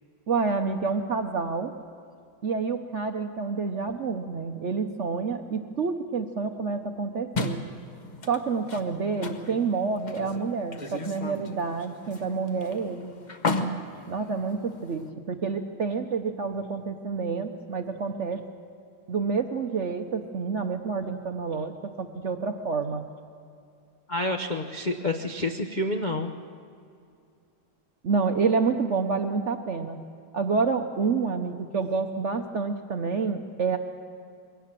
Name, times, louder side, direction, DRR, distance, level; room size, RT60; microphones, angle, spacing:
voice 1, 0.3-1.7 2.4-7.6 8.3-13.1 14.1-18.4 19.1-21.7 22.0-23.0 28.0-30.0 30.3-33.8, right 5 dB, 55° right, 6 dB, 0.8 m, -28 dB
sound 1, 7.3-15.1, left 2 dB, 35° left, 0.8 m, -35 dB
voice 2, 24.1-26.3, left 1 dB, 65° left, 4 dB, 0.4 m, -28 dB
22.0 x 17.5 x 7.5 m, 2.4 s
omnidirectional pair, 2.1 m